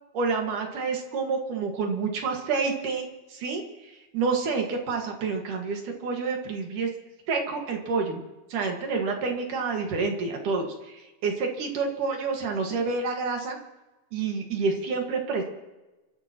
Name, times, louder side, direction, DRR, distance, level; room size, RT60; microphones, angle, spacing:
voice 1, 0.1-6.9 7.3-8.2 8.5-11.3 11.6-13.6 14.1-15.5, right 4 dB, 85° right, 2 dB, 3.4 m, -28 dB
29.0 x 14.0 x 3.0 m, 1.1 s
omnidirectional pair, 3.6 m